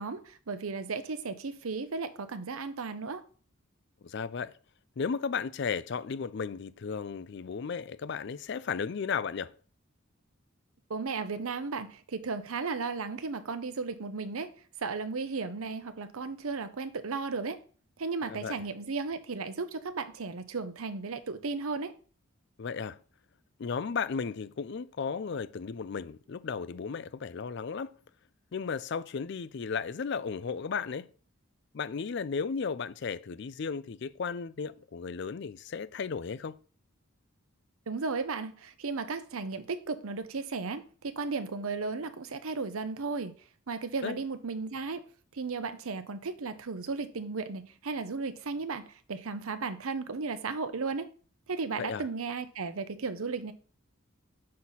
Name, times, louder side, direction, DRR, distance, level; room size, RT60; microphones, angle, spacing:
voice 1, 0.0-3.2 10.9-14.5 14.8-17.6 18.0-21.9 37.9-43.3 43.7-45.1 45.3-51.1 51.5-53.5, right 4 dB, 80° right, 0.7 m, -35 dB
voice 2, 4.0-4.5 5.0-9.5 18.2-18.6 22.6-23.0 23.6-27.9 28.5-31.1 31.7-36.6 44.0-44.2 51.8-52.1, left 5 dB, 55° left, 0.4 m, -34 dB
6.4 x 4.0 x 5.6 m
head